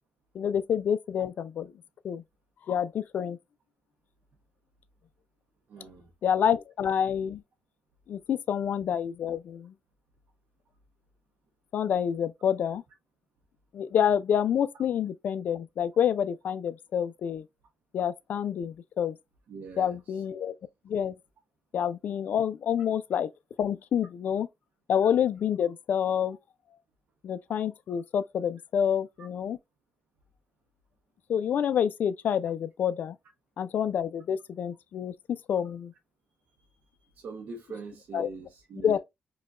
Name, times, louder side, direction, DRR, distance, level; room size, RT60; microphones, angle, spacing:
voice 1, 0.3-1.7 2.0-2.2 2.7-3.4 6.2-7.4 8.1-9.7 11.7-12.8 13.7-17.4 17.9-19.2 19.8-20.5 20.9-21.1 21.7-23.3 23.6-24.5 24.9-26.4 27.2-29.6 31.3-33.2 33.6-35.9 38.1-38.3 38.8-39.0, left 8 dB, 65° left, 0.3 m, -28 dB
voice 2, 5.7-6.1 19.5-20.2 37.1-39.0, right 4 dB, 70° right, 0.7 m, -43 dB
4.8 x 2.2 x 2.3 m
cardioid pair, 110°, 3 cm